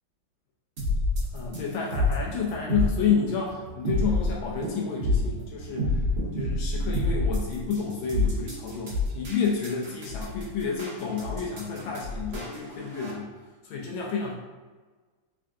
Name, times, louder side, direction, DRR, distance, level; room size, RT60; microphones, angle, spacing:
sound 1, 0.8-13.1, left 2 dB, 90° right, 0.5 m, -28 dB
voice 1, 1.3-6.0 6.3-13.3 13.6-14.3, left 5 dB, 75° left, -2 dB, 1.3 m, -30 dB
3.6 x 3.4 x 2.4 m, 1.4 s
omnidirectional pair, 2.4 m